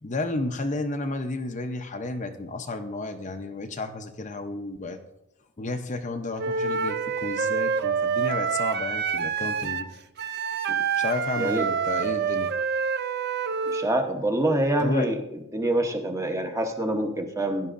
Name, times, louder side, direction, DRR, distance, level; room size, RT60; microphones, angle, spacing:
voice 1, 0.0-5.0 5.6-9.9 10.9-12.5 14.8-15.1, left 2 dB, 35° left, 6 dB, 0.6 m, -32 dB
Wind instrument woodwind instrument, 6.4-13.9, right 6 dB, 50° right, 0.5 m, -27 dB
voice 2, 11.4-11.7 13.7-15.2 15.5-17.7, right 1 dB, 15° right, 4 dB, 0.8 m, -26 dB
16.0 x 11.0 x 2.5 m, 0.90 s
head